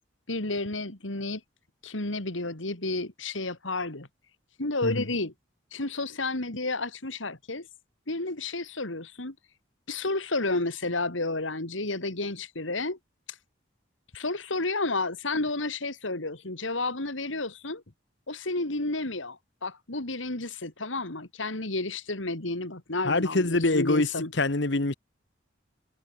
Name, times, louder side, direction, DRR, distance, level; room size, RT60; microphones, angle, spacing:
voice 1, 0.3-1.4 1.8-4.1 4.6-5.3 5.7-7.7 8.1-9.3 9.9-13.0 13.3-13.4 14.1-17.8 18.3-24.3, left 2 dB, 80° left, 3.2 m, -31 dB
voice 2, 23.0-24.9, left 2 dB, 65° left, 1.5 m, -25 dB
head